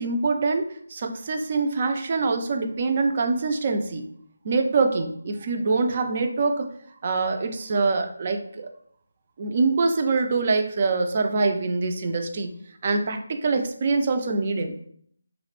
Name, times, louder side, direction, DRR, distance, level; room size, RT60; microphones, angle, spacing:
voice 1, 0.0-4.0 4.4-6.7 7.0-8.7 9.4-12.5 12.8-14.7, right 3 dB, 40° right, 6 dB, 0.3 m, -24 dB
2.4 x 2.0 x 3.0 m, 0.63 s
figure-of-eight pair, 160°, 0 cm